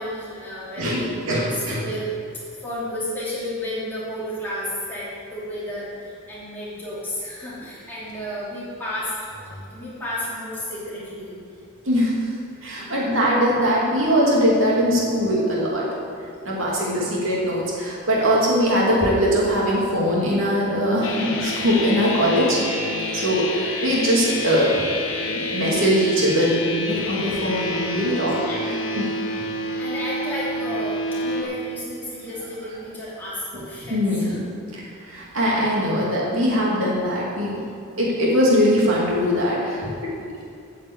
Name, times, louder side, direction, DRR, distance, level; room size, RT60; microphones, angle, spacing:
voice 1, 0.0-2.2 2.5-9.1 9.4-11.4 12.7-13.2 16.5-16.8 18.2-18.4 23.3-23.7 27.9-28.9 29.8-34.4, left 1 dB, 10° left, -9 dB, 2.8 m, -32 dB
voice 2, 0.8-1.9 11.8-12.1 12.6-15.9 16.4-22.6 23.1-24.9 25.5-28.3 28.9-29.1 29.3-29.4 33.9-34.4 34.7-37.6 38.0-40.1, equal, 60° right, -5 dB, 2.7 m, -21 dB
sound 1, 21.0-31.4, left 1 dB, 55° left, 1.3 m, -28 dB
9.2 x 5.9 x 8.2 m, 2.5 s
head